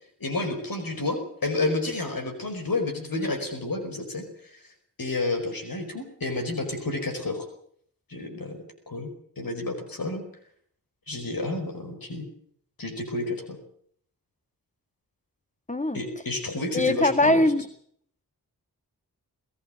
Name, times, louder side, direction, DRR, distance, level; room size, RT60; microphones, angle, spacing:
voice 1, 0.2-4.6 5.0-7.4 8.1-8.6 8.9-9.1 9.4-10.2 11.1-12.3 12.8-13.6 15.9-17.4, left 2 dB, 60° left, 5 dB, 5.1 m, -30 dB
voice 2, 15.7-16.0 16.7-17.7, left 1 dB, 20° left, 10 dB, 2.0 m, -21 dB
22.0 x 15.0 x 9.0 m, 0.64 s
cardioid pair, 40°, 39 cm